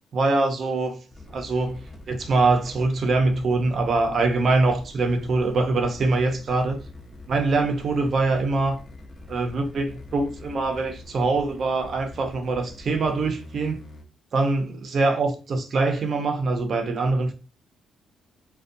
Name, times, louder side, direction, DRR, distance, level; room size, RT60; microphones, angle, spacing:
voice 1, 0.1-1.0 1.3-1.8 2.1-6.8 7.3-8.8 9.3-13.8 14.3-17.3, right 3 dB, 50° right, 0.5 m, -23 dB
sound 1, 1.1-14.0, left 2 dB, 35° left, 0.8 m, -44 dB
2.4 x 2.2 x 2.6 m
cardioid pair, 90°, 0 cm